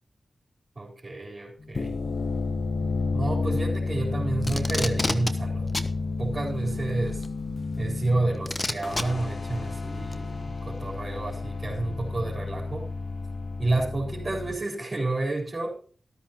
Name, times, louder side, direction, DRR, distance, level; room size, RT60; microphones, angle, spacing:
voice 1, 0.8-2.0 3.1-5.7 6.2-7.2 7.8-12.9 13.6-15.7, right 2 dB, 45° right, -6 dB, 4.1 m, -30 dB
sound 1, 1.6-14.5, left 3 dB, 65° left, 0.8 m, -31 dB
Packing tape duct tape, 4.4-5.3 5.7-5.9 7.2-7.3 8.5-9.0 10.1-10.2, left 2 dB, 35° left, 1.0 m, -28 dB
13.5 x 13.0 x 3.0 m, 0.43 s
cardioid pair, 45°, 0 cm